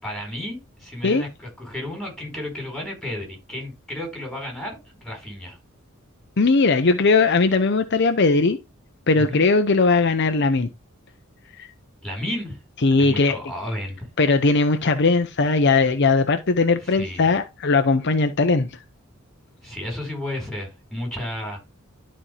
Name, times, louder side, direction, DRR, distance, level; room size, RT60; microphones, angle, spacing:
voice 1, 0.0-5.6 9.2-9.5 12.0-12.6 13.0-14.1 16.8-17.3 19.6-21.6, left 1 dB, ahead, 4.4 m, -32 dB
voice 2, 6.4-8.6 9.1-10.7 11.6-11.7 12.8-13.4 14.2-18.7, left 3 dB, 55° left, 0.7 m, -19 dB
12.5 x 4.4 x 3.3 m
head